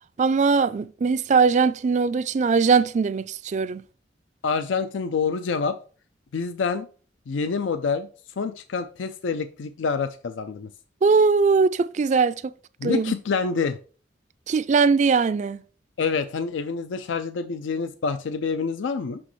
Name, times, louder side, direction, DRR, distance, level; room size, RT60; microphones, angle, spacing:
voice 1, 0.2-3.8 11.0-12.4 12.8-13.1 14.5-15.6, right 5 dB, 40° right, 0.3 m, -20 dB
voice 2, 4.4-5.8 6.3-6.9 7.3-8.1 8.4-10.7 12.8-13.8 16.0-19.2, left 5 dB, 90° left, 0.4 m, -27 dB
6.1 x 6.0 x 3.1 m
head